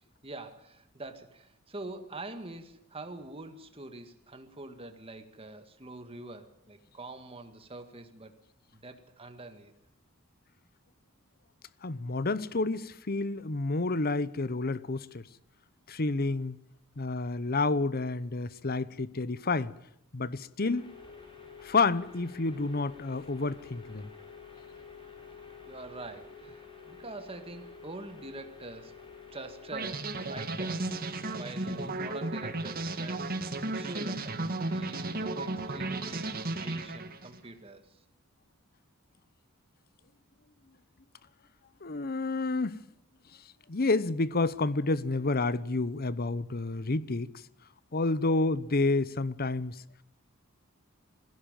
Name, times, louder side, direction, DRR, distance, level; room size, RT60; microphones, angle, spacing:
voice 1, 0.2-8.3 8.7-9.7 25.6-29.0 29.3-30.9 31.3-33.3 33.6-38.0, right 2 dB, 25° right, 2.0 m, -45 dB
voice 2, 11.8-15.3 15.9-16.6 17.0-19.7 20.1-20.9 21.6-24.1 41.8-42.8 43.7-47.3 47.9-49.8, left 3 dB, 45° left, 0.9 m, -29 dB
sound 1, 20.7-30.0, left 5 dB, 25° left, 4.9 m, -49 dB
sound 2, 29.7-37.4, right 2 dB, 45° right, 2.0 m, -34 dB
21.0 x 16.5 x 9.1 m
head